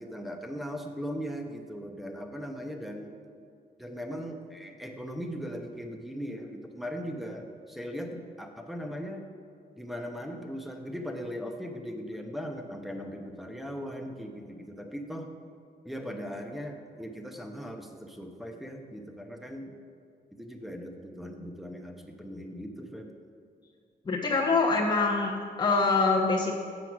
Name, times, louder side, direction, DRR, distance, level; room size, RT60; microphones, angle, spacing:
voice 1, 0.0-3.1 3.8-9.3 9.8-15.3 15.8-19.7 20.3-23.1, equal, ahead, 4 dB, 0.9 m, -39 dB
voice 2, 24.1-26.5, left 3 dB, 25° left, -3 dB, 0.9 m, -25 dB
7.7 x 6.2 x 6.1 m, 2.4 s
cardioid pair, 100°, 17 cm